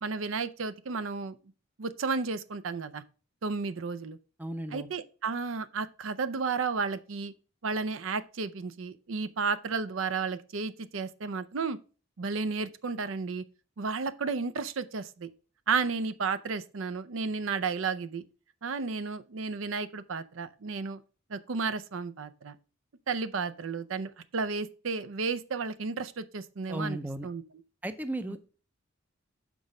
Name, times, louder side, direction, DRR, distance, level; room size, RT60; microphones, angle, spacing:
voice 1, 0.0-1.4 1.8-3.0 3.4-4.2 4.7-7.3 7.6-11.8 12.2-13.4 13.8-15.3 15.7-18.2 18.6-21.0 21.3-22.5 23.1-27.0 27.2-27.4 28.3-28.4, right 4 dB, 75° right, 0.5 m, -32 dB
voice 2, 4.4-4.9 26.7-27.3 27.8-28.4, right 1 dB, 10° right, 0.4 m, -35 dB
6.1 x 4.8 x 5.2 m
head